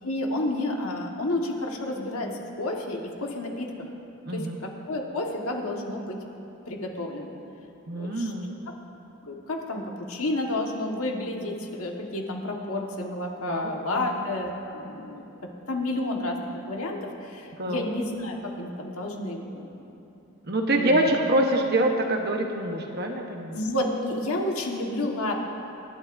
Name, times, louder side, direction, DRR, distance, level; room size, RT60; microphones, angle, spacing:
voice 1, 0.0-3.9 4.3-6.2 6.7-7.4 7.9-8.3 9.3-15.2 15.7-19.7 20.7-21.1 23.5-25.4, left 1 dB, 80° left, 0 dB, 1.6 m, -30 dB
voice 2, 4.2-4.5 7.9-8.5 13.5-13.7 13.9-14.1 17.6-17.8 20.4-23.6, right 1 dB, 45° right, 2 dB, 1.2 m, -25 dB
25.5 x 11.5 x 2.7 m, 2.8 s
head